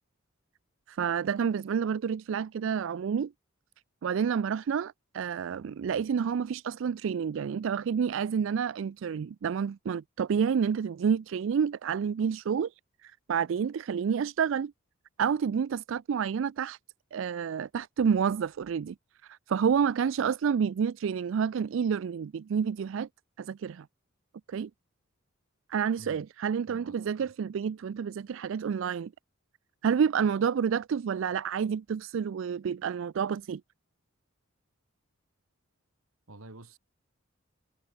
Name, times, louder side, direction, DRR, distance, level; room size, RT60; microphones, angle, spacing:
voice 1, 0.9-3.3 4.0-12.7 13.0-14.7 15.2-16.8 17.1-19.0 19.2-23.1 23.4-23.9 24.5-24.7 25.7-29.1 29.8-33.6, right 7 dB, 65° right, 0.3 m, -29 dB
voice 2, 26.7-27.3 36.3-36.8, right 2 dB, 85° right, 2.4 m, -49 dB
head